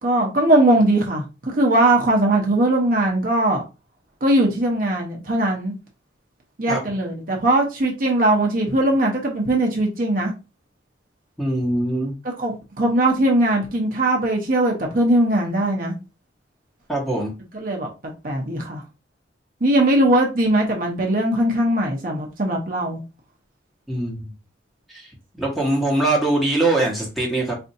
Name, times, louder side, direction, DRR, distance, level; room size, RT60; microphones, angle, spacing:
voice 1, 0.0-3.6 4.2-5.7 6.6-10.3 12.2-15.9 17.5-17.9 18.2-18.8 19.6-23.0, right 1 dB, 45° right, 0.8 m, -20 dB
voice 2, 11.4-12.1 16.9-17.3 23.9-24.3 24.9-25.1 25.4-27.5, right 2 dB, ahead, 1.1 m, -22 dB
4.3 x 2.6 x 2.6 m
head